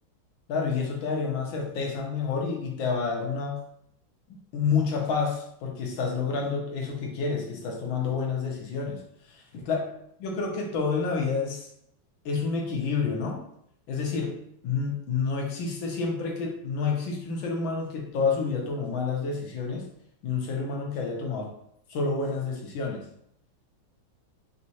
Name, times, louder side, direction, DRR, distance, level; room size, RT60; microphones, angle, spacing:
voice 1, 0.5-3.6 4.5-9.0 9.3-9.8 10.2-11.7 12.2-13.4 13.9-14.4 14.6-19.9 20.2-21.5 21.9-23.0, left 5 dB, 75° left, 0 dB, 1.6 m, -29 dB
4.2 x 3.5 x 2.8 m, 0.72 s
omnidirectional pair, 2.2 m